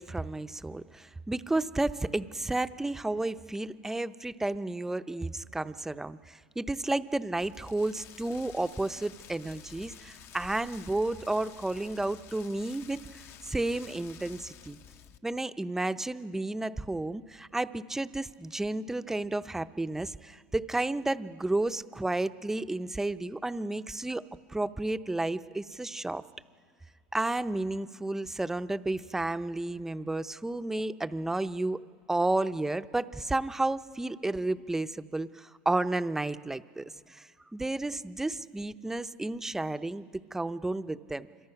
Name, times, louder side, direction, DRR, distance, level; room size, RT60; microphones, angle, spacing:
voice 1, 0.0-14.8 15.2-24.2 24.5-26.2 27.1-31.8 32.1-41.3, right 2 dB, 5° right, 11 dB, 0.6 m, -32 dB
Rain, 7.4-15.2, left 9 dB, 45° left, 0.7 m, -51 dB
26.5 x 23.5 x 5.8 m, 2.2 s
supercardioid pair, 125°, 6 cm